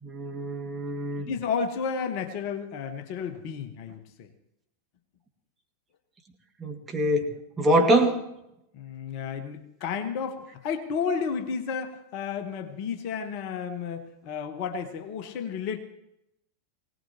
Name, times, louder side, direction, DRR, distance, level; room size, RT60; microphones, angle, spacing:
voice 1, 0.0-1.3 6.6-8.2, right 1 dB, 15° right, 2 dB, 2.0 m, -24 dB
voice 2, 1.3-4.3 8.7-15.8, left 6 dB, 45° left, 8 dB, 1.3 m, -32 dB
21.5 x 18.0 x 3.0 m, 0.83 s
figure-of-eight pair, 90°, 0 cm